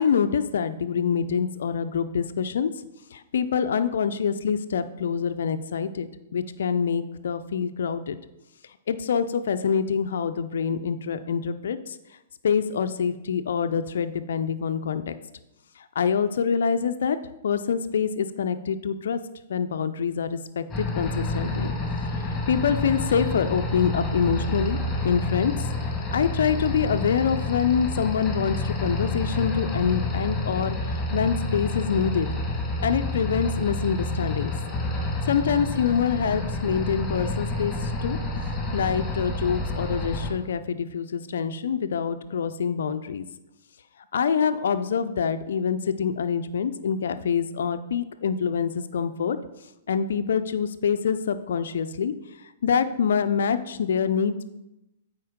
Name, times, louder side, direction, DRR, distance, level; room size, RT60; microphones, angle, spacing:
voice 1, 0.0-2.7 3.1-8.2 8.9-12.0 12.4-15.1 16.0-17.2 17.4-19.2 19.5-21.7 22.5-24.8 25.0-25.7 26.1-32.3 32.8-34.5 35.3-38.2 38.7-43.3 44.1-49.4 49.9-52.1 52.6-54.4, left 7 dB, 70° left, 10 dB, 0.4 m, -25 dB
sound 1, 20.7-40.3, left 2 dB, 15° left, 1.7 m, -29 dB
8.4 x 4.5 x 3.7 m, 0.93 s
figure-of-eight pair, 115°, 0 cm